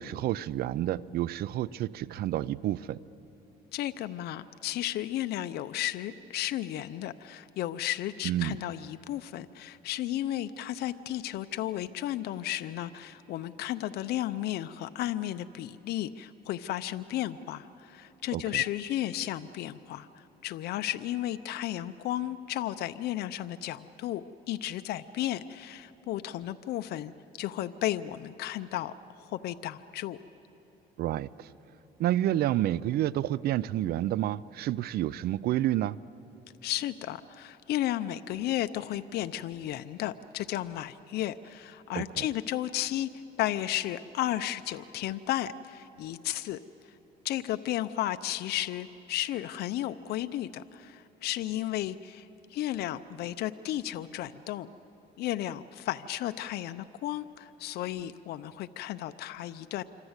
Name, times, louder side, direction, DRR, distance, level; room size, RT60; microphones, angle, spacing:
voice 1, 0.0-3.0 8.2-8.6 18.3-18.6 31.0-31.5 32.0-36.0 41.9-42.2, right 13 dB, 65° right, 0.5 m, -29 dB
voice 2, 3.7-27.1 27.4-30.2 36.6-43.1 43.4-46.6 46.9-47.0 47.2-54.7 55.2-59.8, left 13 dB, 70° left, 0.6 m, -33 dB
26.5 x 24.5 x 8.1 m
cardioid pair, 110°, 17 cm